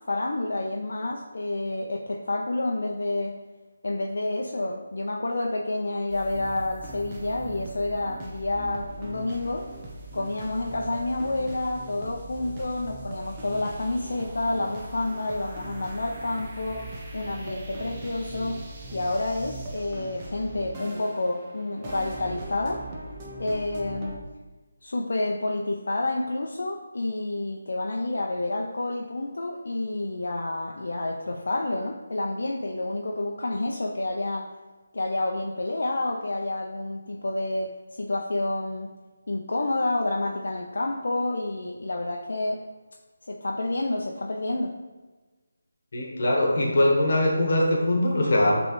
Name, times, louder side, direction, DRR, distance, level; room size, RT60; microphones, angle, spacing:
voice 1, 0.1-3.4 3.8-9.7 10.1-16.8 17.1-18.6 18.9-22.8 23.4-24.2 24.8-34.5 34.9-37.7 38.0-38.9 39.3-42.6 43.3-44.7, left 2 dB, 75° left, 0 dB, 0.4 m, -29 dB
sound 1, 6.1-24.2, right 2 dB, 20° right, 0.5 m, -40 dB
voice 2, 45.9-48.6, left 1 dB, 50° left, -1 dB, 1.1 m, -22 dB
5.4 x 3.1 x 3.0 m, 1.3 s
figure-of-eight pair, 170°, 0 cm